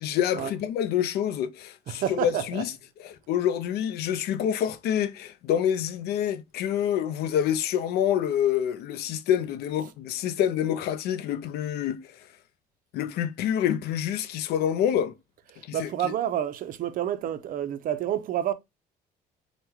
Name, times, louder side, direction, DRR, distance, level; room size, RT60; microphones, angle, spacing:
voice 1, 0.0-2.7 3.0-12.1 12.9-15.1 15.7-16.1, left 10 dB, 70° left, 0.4 m, -27 dB
voice 2, 1.9-2.6 15.5-18.5, right 10 dB, 55° right, 0.4 m, -29 dB
3.4 x 2.1 x 3.0 m
cardioid pair, 110°, 17 cm